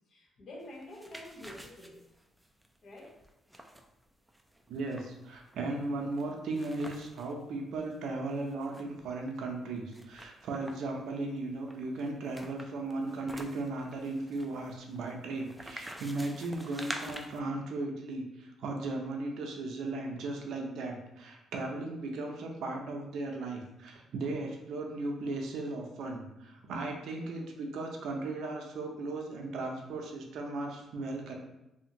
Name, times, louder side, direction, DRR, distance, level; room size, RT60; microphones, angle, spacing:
voice 1, 0.1-2.0 2.8-3.2, left 1 dB, 60° left, -2 dB, 0.8 m, -48 dB
sound 1, 0.6-7.3 7.7-7.8 8.1-9.3 9.9-11.0 11.7-17.4, right 1 dB, 5° right, 0.3 m, -47 dB
voice 2, 4.7-31.4, right 2 dB, 75° right, 1 dB, 0.5 m, -36 dB
2.7 x 2.5 x 2.8 m, 0.90 s
cardioid pair, 90°, 0 cm